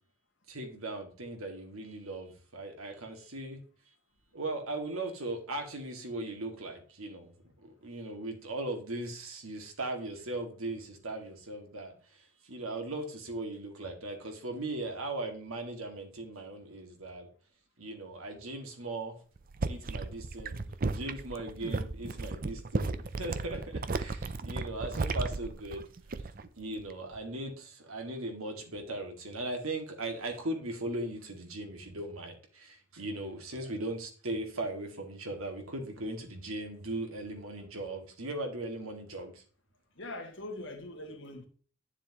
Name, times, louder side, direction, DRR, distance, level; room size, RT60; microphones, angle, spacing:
voice 1, 0.5-3.6 4.3-7.3 7.6-17.3 17.8-19.2 19.7-20.6 20.9-25.8 26.4-39.4, right 2 dB, 85° right, 2.1 m, -38 dB
sound 1, 19.4-26.5 26.8-27.2, right 3 dB, 40° right, 0.5 m, -34 dB
voice 2, 40.0-41.5, left 2 dB, 60° left, 2.0 m, -42 dB
10.0 x 7.2 x 3.0 m
head